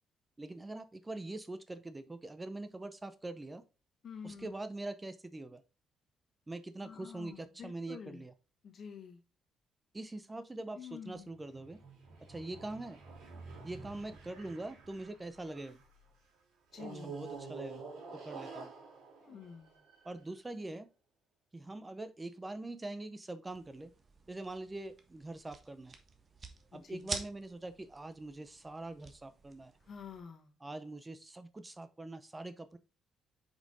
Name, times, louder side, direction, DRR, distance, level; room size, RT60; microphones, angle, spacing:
voice 1, 0.4-3.6 4.2-5.6 6.5-8.3 9.9-11.8 12.3-13.0 13.6-15.8 17.0-17.8 18.1-18.7 20.0-20.9 21.5-23.9 24.3-26.0 26.7-29.7 30.6-32.8, right 2 dB, 20° right, 11 dB, 0.6 m, -43 dB
voice 2, 4.0-4.5 6.8-8.2 8.6-9.2 10.7-11.3 16.7-17.2 19.2-19.8 26.7-27.1 29.8-30.5, left 6 dB, 55° left, 5 dB, 1.3 m, -48 dB
sound 1, 11.3-15.9 16.7-20.3, right 4 dB, 85° right, 2.7 m, -49 dB
sound 2, 23.5-30.2, right 4 dB, 40° right, 1.2 m, -48 dB
5.2 x 5.0 x 3.9 m, 0.32 s
cardioid pair, 90°, 0 cm